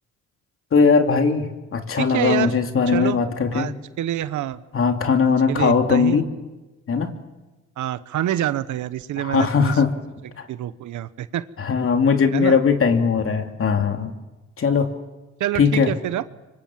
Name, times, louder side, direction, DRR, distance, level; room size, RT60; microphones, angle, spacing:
voice 1, 0.7-3.7 4.7-6.3 6.9-7.1 9.2-9.9 10.4-10.5 11.6-14.2 14.6-14.9 15.6-15.9, left 5 dB, 45° left, 5 dB, 2.8 m, -19 dB
voice 2, 2.0-2.5 2.9-3.2 3.5-4.6 5.2-6.2 7.8-9.8 10.5-11.5 12.3-12.6 15.4-16.2, right 12 dB, 75° right, 15 dB, 1.0 m, -26 dB
25.5 x 25.0 x 7.4 m, 1.1 s
cardioid pair, 90°, 30 cm